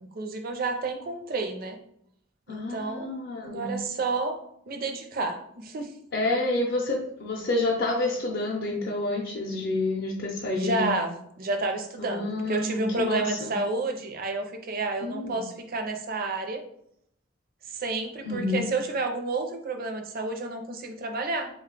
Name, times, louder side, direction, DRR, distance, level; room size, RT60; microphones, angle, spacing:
voice 1, 0.1-1.8 2.5-3.1 3.4-4.4 4.7-5.9 10.5-16.6 17.7-21.5, right 3 dB, 50° right, 5 dB, 0.5 m, -30 dB
voice 2, 2.5-3.8 6.1-10.9 12.0-13.5 15.0-15.4 18.2-18.7, left 2 dB, 55° left, -3 dB, 0.5 m, -29 dB
3.6 x 2.3 x 3.7 m, 0.73 s
head